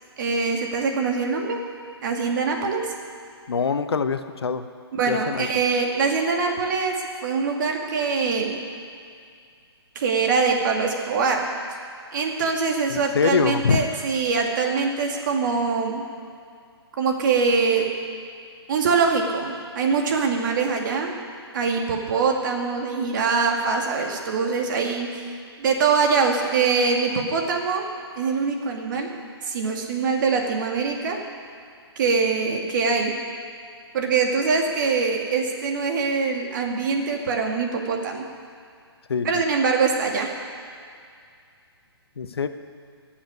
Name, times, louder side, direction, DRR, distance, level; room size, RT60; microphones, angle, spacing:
voice 1, 0.2-1.6 2.0-2.8 5.0-6.9 7.2-8.6 10.0-11.4 12.1-16.0 17.0-17.9 18.7-21.2 21.5-25.3 25.6-27.9 28.2-29.1 29.4-31.2 32.0-33.1 33.9-38.2 39.2-40.3, right 5 dB, 50° right, 1 dB, 2.2 m, -23 dB
voice 2, 3.5-4.6 5.1-5.5 12.9-13.9 39.1-39.3 42.2-42.5, left 5 dB, 70° left, 10 dB, 0.9 m, -24 dB
14.5 x 7.3 x 9.6 m, 2.3 s
figure-of-eight pair, 130°, 14 cm